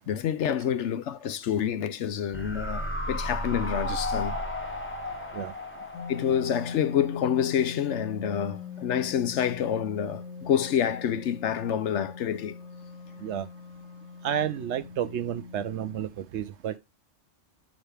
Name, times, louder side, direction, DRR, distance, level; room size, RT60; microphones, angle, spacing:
voice 1, 0.1-4.4 6.1-12.5, left 9 dB, 70° left, 0.9 m, -28 dB
sound 1, 2.3-7.6 7.9-8.0, left 1 dB, 10° left, 0.8 m, -34 dB
sound 2, 5.9-16.1, left 5 dB, 90° left, 1.4 m, -40 dB
voice 2, 14.2-16.8, right 10 dB, 70° right, 0.8 m, -31 dB
8.0 x 4.0 x 3.2 m
omnidirectional pair, 1.3 m